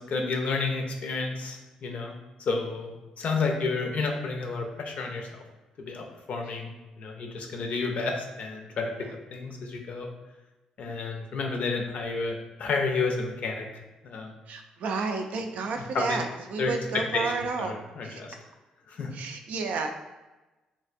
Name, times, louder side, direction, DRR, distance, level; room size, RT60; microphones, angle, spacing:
voice 1, 0.1-2.1 2.4-5.4 5.8-6.7 7.0-8.9 9.3-10.1 10.8-13.7 14.0-14.3 15.8-16.2 16.6-16.7 17.1-18.3 18.9-19.1, left 4 dB, 60° left, 2 dB, 0.5 m, -31 dB
voice 2, 14.5-17.7 18.0-18.2 19.1-19.9, right 4 dB, 65° right, 5 dB, 0.3 m, -31 dB
3.2 x 2.5 x 2.5 m, 1.1 s
supercardioid pair, 55°, 3 cm